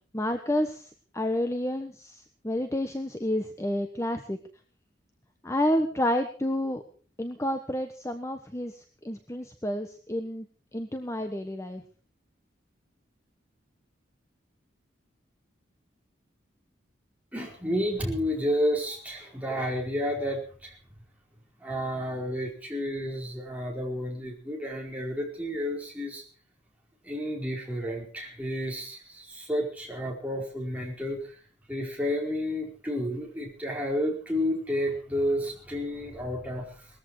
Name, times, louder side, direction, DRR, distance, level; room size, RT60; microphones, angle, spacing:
voice 1, 0.1-4.4 5.4-6.8 7.2-10.5 10.7-11.8, left 1 dB, 15° left, 6 dB, 1.2 m, -30 dB
voice 2, 17.3-20.8 21.6-26.2 27.0-31.4 31.7-36.9, equal, 10° right, -1 dB, 4.7 m, -31 dB
20.0 x 14.5 x 4.9 m, 0.39 s
head